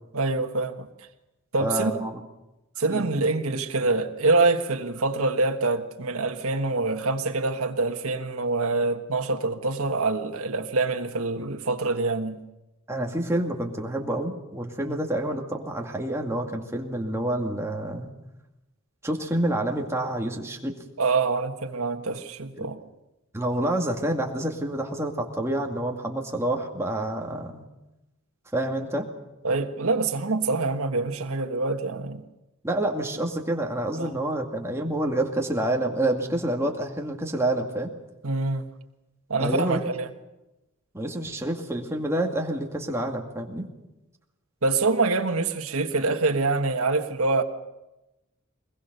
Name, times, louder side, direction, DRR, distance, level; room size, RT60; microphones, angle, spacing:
voice 1, 0.1-0.9 1.5-1.9 2.8-12.4 14.9-15.0 21.0-22.8 29.4-32.2 34.0-34.2 38.2-38.7 39.3-40.1 44.6-47.4, right 3 dB, 75° right, 1.5 m, -25 dB
voice 2, 1.6-2.2 2.9-3.1 12.9-18.1 19.0-20.7 22.6-22.7 23.3-27.7 28.5-29.1 32.6-37.9 39.4-39.8 40.9-43.7, right 1 dB, 10° right, 2.2 m, -28 dB
22.5 x 21.0 x 6.8 m
head